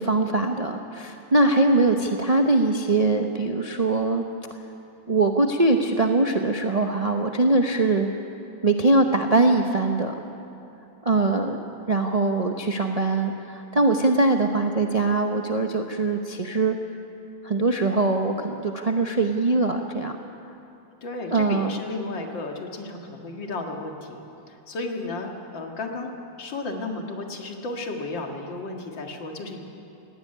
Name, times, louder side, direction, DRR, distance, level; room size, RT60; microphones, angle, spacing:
voice 1, 0.0-4.2 5.1-8.1 8.6-10.1 11.0-11.6 11.9-16.8 17.4-20.2 21.3-21.8, right 2 dB, 40° right, 4 dB, 0.5 m, -22 dB
voice 2, 21.0-25.3 25.5-26.1 26.4-29.7, left 2 dB, 75° left, 2 dB, 2.6 m, -33 dB
17.5 x 15.5 x 10.0 m, 2.9 s
omnidirectional pair, 2.1 m